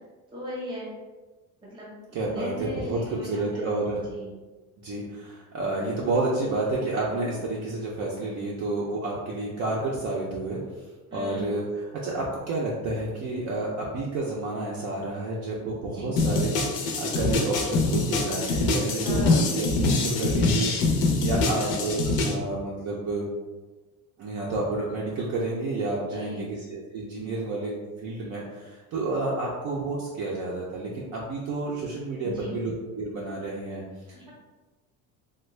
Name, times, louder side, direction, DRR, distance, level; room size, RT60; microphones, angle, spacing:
voice 1, 0.3-0.9 1.7-3.7 4.1-4.4 11.1-11.6 15.8-16.2 19.0-19.5 21.4-21.9 26.0-26.5 32.2-32.6 34.1-34.3, equal, 15° right, -5 dB, 0.7 m, -37 dB
voice 2, 2.1-4.0 4.8-10.6 11.1-11.6 11.9-16.5 16.8-20.7 21.2-23.3 24.2-33.8, right 2 dB, 45° right, -4 dB, 0.4 m, -30 dB
sound 1, 16.2-22.3, left 2 dB, 55° left, 0.6 m, -24 dB
3.4 x 2.2 x 3.1 m, 1.3 s
cardioid pair, 180°, 37 cm